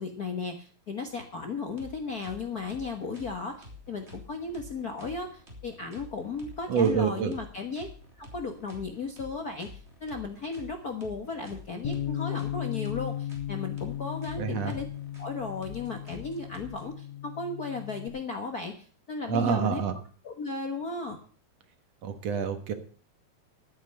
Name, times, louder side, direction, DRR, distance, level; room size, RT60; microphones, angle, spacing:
voice 1, 0.0-7.9 8.2-14.8 15.2-19.8 20.2-21.2, left 4 dB, 50° left, 4 dB, 1.2 m, -35 dB
sound 1, 1.7-16.8, left 2 dB, 20° right, 3.6 m, -49 dB
voice 2, 6.7-7.3 14.4-14.7 19.3-19.9 22.0-22.7, right 7 dB, 65° right, 8 dB, 2.4 m, -27 dB
Bass guitar, 11.8-18.1, left 12 dB, 80° left, 2.2 m, -36 dB
12.0 x 9.4 x 6.7 m, 0.43 s
omnidirectional pair, 3.3 m